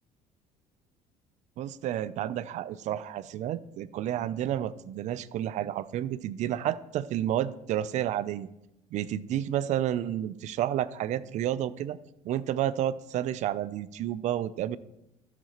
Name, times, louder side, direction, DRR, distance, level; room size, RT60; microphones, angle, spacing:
voice 1, 1.6-8.5 8.9-12.0 12.2-14.8, right 11 dB, 55° right, 17 dB, 0.4 m, -30 dB
13.0 x 7.3 x 3.0 m, 0.86 s
cardioid pair, 125°, 15 cm